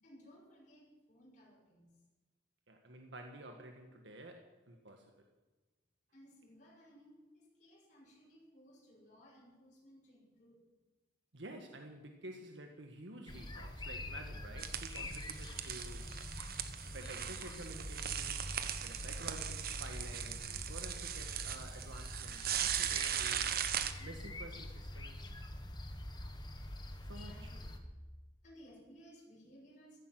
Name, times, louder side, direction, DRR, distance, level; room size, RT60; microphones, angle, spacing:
voice 1, 0.0-2.0 6.1-10.6 27.0-27.7 28.4-30.0, equal, 45° left, -4 dB, 6.2 m, -60 dB
voice 2, 2.7-5.3 11.3-16.1 16.9-18.3 18.8-23.5 24.0-25.3 27.1-27.5, right 1 dB, 80° right, 4 dB, 1.6 m, -51 dB
sound 1, 13.3-27.8, left 1 dB, 25° left, 1.4 m, -45 dB
sound 2, 14.6-23.9, right 9 dB, 55° right, 1.0 m, -39 dB
15.5 x 14.5 x 6.1 m, 1.2 s
head